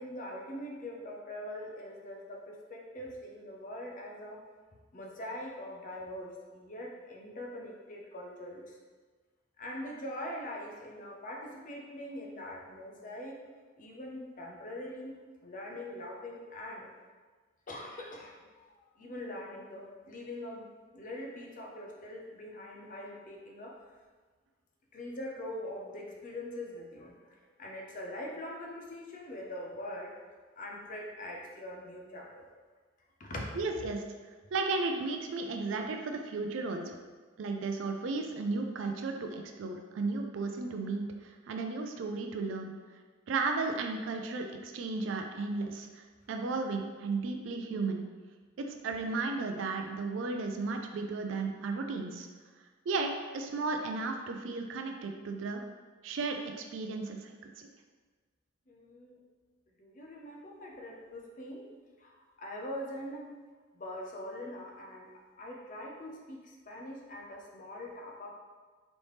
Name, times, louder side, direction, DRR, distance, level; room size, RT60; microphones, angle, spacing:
voice 1, 0.0-4.4 4.9-8.8 9.6-13.4 13.8-16.9 17.7-20.7 20.9-23.8 24.9-30.2 30.6-32.5 33.2-33.6 58.7-59.2 59.8-61.6 62.0-63.3 63.7-68.3, left 1 dB, 40° left, 0 dB, 0.6 m, -43 dB
voice 2, 33.6-34.0 34.5-37.0 37.4-42.7 43.3-48.1 48.6-52.3 52.9-53.1 53.3-55.6 56.0-57.7, right 3 dB, 70° right, 4 dB, 0.4 m, -34 dB
4.1 x 3.3 x 3.1 m, 1.4 s
head